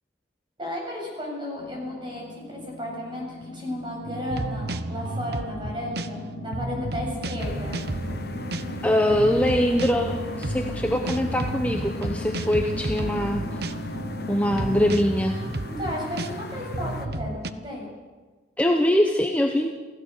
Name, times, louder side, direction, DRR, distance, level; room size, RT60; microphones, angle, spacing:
voice 1, 0.6-7.8 15.7-17.9, left 1 dB, 25° right, -1 dB, 7.8 m, -34 dB
sound 1, 1.6-15.0, left 2 dB, 80° left, 1.1 m, -39 dB
sound 2, 4.0-17.5, right 2 dB, 60° right, 1.0 m, -32 dB
sound 3, 7.4-17.1, left 2 dB, 55° left, 1.1 m, -38 dB
voice 2, 8.8-13.7 14.3-15.4 18.6-19.7, left 1 dB, 10° left, 2 dB, 1.1 m, -23 dB
28.5 x 16.0 x 6.8 m, 1.3 s
head